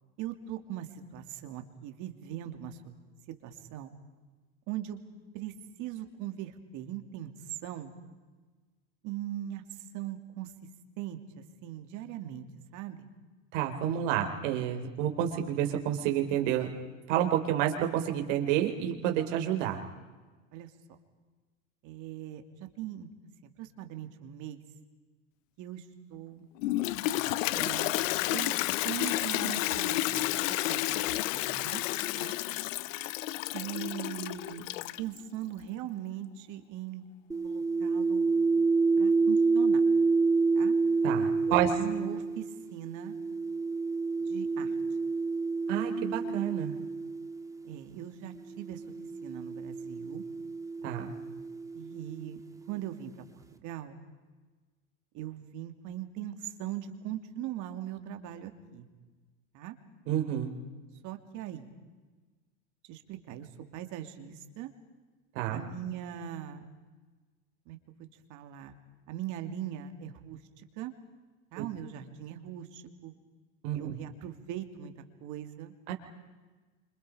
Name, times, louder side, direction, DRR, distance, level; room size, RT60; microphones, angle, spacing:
voice 1, 0.2-2.9 3.4-3.9 4.7-5.0 5.3-7.9 9.0-9.6 9.9-10.5 11.0-12.4 12.7-13.1 20.5-20.7 21.8-23.1 23.4-24.6 25.6-25.8 26.1-26.5 27.5-28.5 28.8-31.8 32.1-32.4 33.5-34.7 35.0-37.0 37.4-38.3 39.0-39.8 40.5-40.8 41.5-42.5 42.7-43.1 44.2-44.7 47.6-48.8 49.2-50.2 51.7-52.4 52.7-54.0 55.1-58.9 59.5-59.7 61.0-61.7 62.9-64.7 65.5-66.7 67.7-67.8 68.3-68.7 69.1-70.9 71.5-73.1 73.7-74.9 75.2-75.7, right 11 dB, 50° right, 7 dB, 2.8 m, -40 dB
voice 2, 13.5-16.7 17.1-19.8 41.0-41.7 45.7-46.8 50.8-51.1 60.1-60.5 65.4-65.6 71.6-71.7 73.6-74.0 75.9-76.0, right 11 dB, 70° right, 4 dB, 3.8 m, -29 dB
Toilet flush, 26.6-35.2, left 16 dB, 80° left, 0.8 m, -31 dB
sound 1, 37.3-47.7 48.6-52.3, right 4 dB, 10° right, 1.6 m, -29 dB
29.5 x 26.5 x 5.1 m, 1.3 s
supercardioid pair, 140°, 38 cm